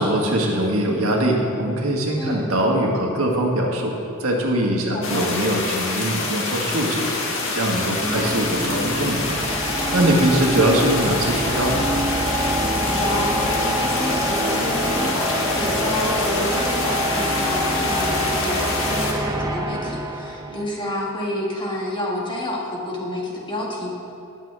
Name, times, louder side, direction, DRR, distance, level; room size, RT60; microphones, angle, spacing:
voice 1, 0.0-7.1 7.5-9.3 9.9-11.9 20.5-20.6, right 1 dB, 70° right, -1 dB, 1.7 m, -22 dB
voice 2, 2.2-2.5 4.9-5.3 7.9-8.3 10.1-10.4 12.7-23.9, left 1 dB, 20° left, -3 dB, 1.8 m, -29 dB
sound 1, 5.0-19.1, left 3 dB, 65° left, 1.8 m, -26 dB
sound 2, 7.7-20.8, right 1 dB, 15° right, 0.7 m, -26 dB
19.0 x 8.2 x 3.4 m, 2.8 s
head